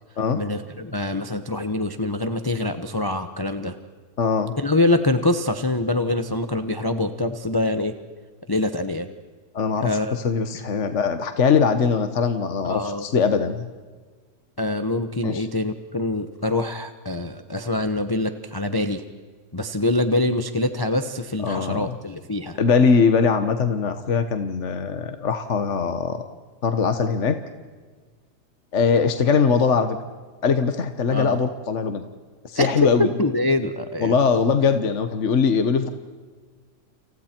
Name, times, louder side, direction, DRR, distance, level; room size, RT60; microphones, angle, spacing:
voice 1, 0.3-3.8 4.6-7.9 8.5-9.1 9.8-10.2 10.5-10.7 12.6-13.0 14.6-19.0 19.5-22.6 31.1-31.4 32.5-32.7 33.0-34.2, left 2 dB, 15° left, 8 dB, 0.8 m, -24 dB
voice 2, 4.2-4.5 9.5-13.7 15.2-15.5 21.4-22.0 22.6-26.2 26.6-27.4 28.7-30.0 30.4-32.0 32.4-33.1 34.0-35.9, left 5 dB, 50° left, 8 dB, 1.4 m, -21 dB
30.0 x 28.5 x 4.5 m, 1.5 s
omnidirectional pair, 1.7 m